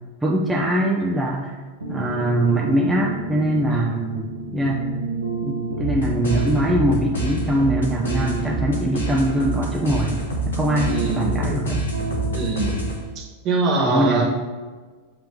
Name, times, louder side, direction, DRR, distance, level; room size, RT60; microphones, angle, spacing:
voice 1, 0.2-1.5 1.9-4.9 5.4-11.8 13.7-14.3, right 1 dB, 5° right, -3 dB, 0.6 m, -22 dB
sound 1, 1.8-13.0, right 2 dB, 80° right, 0.9 m, -29 dB
sound 2, 5.8-13.2, right 2 dB, 65° left, 1.2 m, -28 dB
voice 2, 10.8-11.4 12.3-12.8 13.1-14.3, right 3 dB, 35° right, 0 dB, 1.3 m, -24 dB
7.6 x 2.9 x 5.0 m, 1.4 s
figure-of-eight pair, 90°, 0 cm